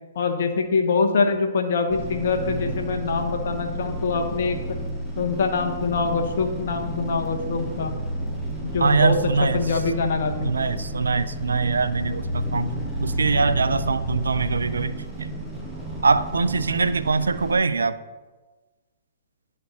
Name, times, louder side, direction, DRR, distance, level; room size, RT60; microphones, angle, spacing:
voice 1, 0.1-4.6 5.2-7.9 8.6-10.5, left 4 dB, 60° left, 5 dB, 0.9 m, -24 dB
sound 1, 1.9-17.6, right 1 dB, 10° right, 1.3 m, -31 dB
voice 2, 8.8-9.6 10.4-12.7 13.0-14.9 15.2-15.3 16.0-18.0, right 4 dB, 80° right, 13 dB, 0.3 m, -22 dB
11.5 x 4.3 x 2.7 m, 1.3 s
hypercardioid pair, 120°, 0 cm